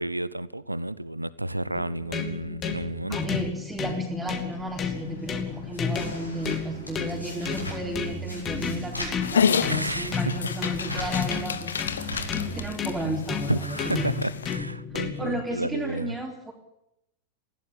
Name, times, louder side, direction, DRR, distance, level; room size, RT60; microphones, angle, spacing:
voice 1, 0.0-3.2 9.7-10.4 12.0-12.1 13.5-16.2, right 1 dB, 85° right, 0.8 m, -31 dB
sound 1, 1.7-15.4, left 6 dB, 25° left, 3.0 m, -33 dB
voice 2, 3.1-14.1 15.2-16.5, right 2 dB, 10° right, 4.0 m, -34 dB
sound 2, 4.5-12.6, left 1 dB, 85° left, 7.4 m, -40 dB
Dog, 9.2-14.6, left 7 dB, 70° left, 1.4 m, -29 dB
20.0 x 17.0 x 8.9 m
figure-of-eight pair, 90°, 0 cm